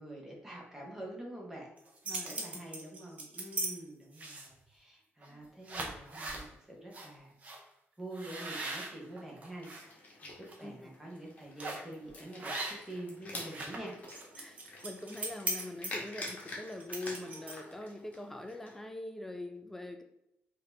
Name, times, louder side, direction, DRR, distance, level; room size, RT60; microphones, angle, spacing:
voice 1, 0.0-1.7 2.2-7.3 8.0-9.9 10.4-13.9, right 1 dB, 10° right, -3 dB, 1.0 m, -46 dB
sound 1, 1.8-3.7 4.1-4.6 5.2-5.4 5.6-6.4 6.9-7.1 7.4-7.6 8.1-9.8 10.3-10.5 11.6-11.9 12.4-13.0 13.3-17.8, right 2 dB, 35° right, 0.7 m, -39 dB
voice 2, 2.1-2.6 10.6-10.7 14.4-14.6 14.8-20.0, left 2 dB, 10° left, 6 dB, 0.3 m, -43 dB
sound 2, 9.6-18.8, left 2 dB, 35° left, 1.0 m, -48 dB
4.0 x 2.6 x 3.3 m, 0.81 s
wide cardioid pair, 180°, 4 cm